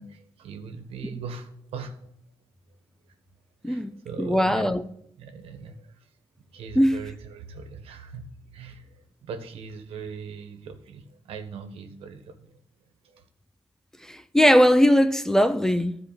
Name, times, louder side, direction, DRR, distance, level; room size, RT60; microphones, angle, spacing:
voice 1, 0.0-2.1 3.6-4.8 5.2-6.1 6.5-12.6 13.0-13.2, right 5 dB, 80° right, 1.5 m, -40 dB
voice 2, 3.6-4.8 6.8-7.0 14.0-16.0, equal, 5° left, 0.7 m, -20 dB
12.5 x 4.9 x 6.8 m
cardioid pair, 75°, 10 cm